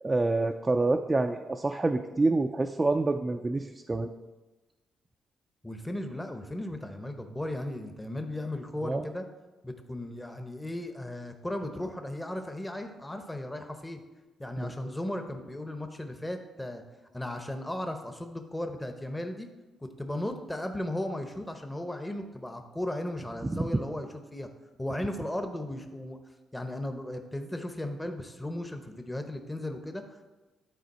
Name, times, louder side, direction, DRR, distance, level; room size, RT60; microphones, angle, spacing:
voice 1, 0.0-4.1 8.8-9.1 14.6-14.9 23.4-23.7, right 2 dB, 20° right, 5 dB, 0.3 m, -27 dB
voice 2, 5.6-9.3 9.6-14.0 14.4-16.8 17.1-19.5 19.8-24.1 24.3-24.5 24.8-26.2 26.5-30.2, left 1 dB, 10° left, 6 dB, 0.7 m, -36 dB
9.2 x 4.1 x 4.1 m, 1.2 s
cardioid pair, 90°, 0 cm